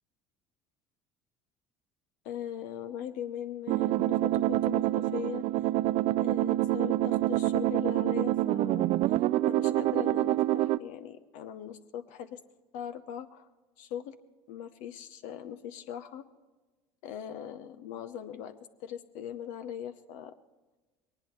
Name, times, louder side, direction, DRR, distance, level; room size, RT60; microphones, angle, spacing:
voice 1, 2.2-5.7 6.2-9.2 9.5-12.4 12.7-13.5 13.8-14.1 14.5-16.3 17.0-18.5 18.8-20.3, left 9 dB, 70° left, 9 dB, 0.8 m, -40 dB
sound 1, 3.7-10.8, right 15 dB, 55° right, 0.4 m, -27 dB
21.0 x 19.5 x 3.2 m, 1.2 s
hypercardioid pair, 75°, 14 cm